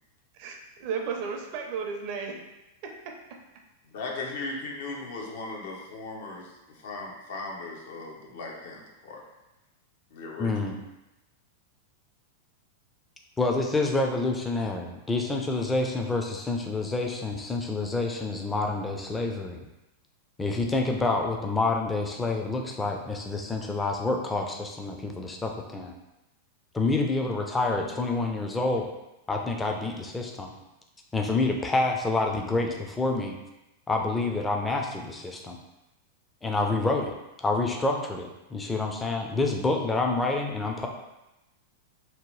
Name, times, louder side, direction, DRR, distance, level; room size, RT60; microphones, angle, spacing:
voice 1, 0.4-2.4, right 5 dB, 50° right, 2 dB, 0.5 m, -33 dB
voice 2, 3.8-9.2 10.1-10.5, left 3 dB, 70° left, 0 dB, 0.6 m, -38 dB
voice 3, 10.4-10.8 13.4-19.6 20.4-25.9 26.7-28.9 29.3-30.5 31.1-33.4 33.9-35.6 36.4-40.9, left 3 dB, 10° left, 2 dB, 0.4 m, -28 dB
2.8 x 2.0 x 3.0 m, 0.96 s
supercardioid pair, 130°, 0 cm